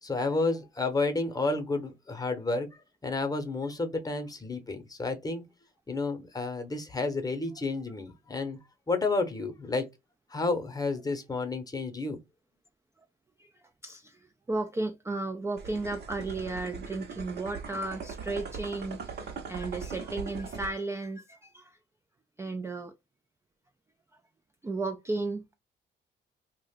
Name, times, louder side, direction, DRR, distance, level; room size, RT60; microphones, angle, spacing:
voice 1, 0.0-2.7 3.0-5.4 5.9-8.6 8.9-9.9 10.3-12.2, left 3 dB, 20° left, 0.8 m, -31 dB
voice 2, 13.4-21.8 22.4-22.9 24.6-25.4, right 2 dB, 15° right, 0.3 m, -34 dB
sound 1, 15.6-20.7, right 5 dB, 55° right, 0.8 m, -40 dB
2.4 x 2.1 x 3.5 m
cardioid pair, 90°, 20 cm